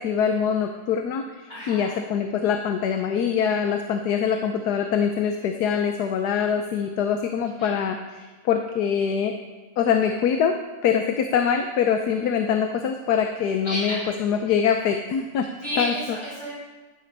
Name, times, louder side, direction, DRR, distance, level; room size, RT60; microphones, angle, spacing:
voice 1, 0.0-9.4 9.8-10.6 10.8-15.5 15.8-15.9, left 7 dB, 85° left, 5 dB, 1.4 m, -24 dB
voice 2, 1.5-1.9 7.6-7.7 13.6-14.1 15.6-16.5, equal, 60° left, -8 dB, 4.4 m, -31 dB
11.5 x 11.0 x 5.4 m, 1.2 s
omnidirectional pair, 1.7 m